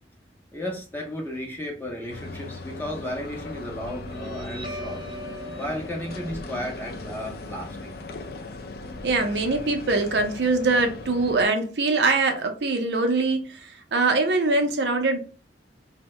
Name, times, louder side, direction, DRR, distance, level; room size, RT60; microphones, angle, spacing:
voice 1, 0.5-5.1 5.6-8.0, left 1 dB, 10° left, 0.6 m, -34 dB
sound 1, 2.1-11.4, left 2 dB, 55° left, 0.4 m, -38 dB
Guitar, 3.9-10.9, equal, 30° right, 0.7 m, -42 dB
voice 2, 9.0-15.2, right 3 dB, 75° right, 0.6 m, -23 dB
2.7 x 2.1 x 3.0 m
head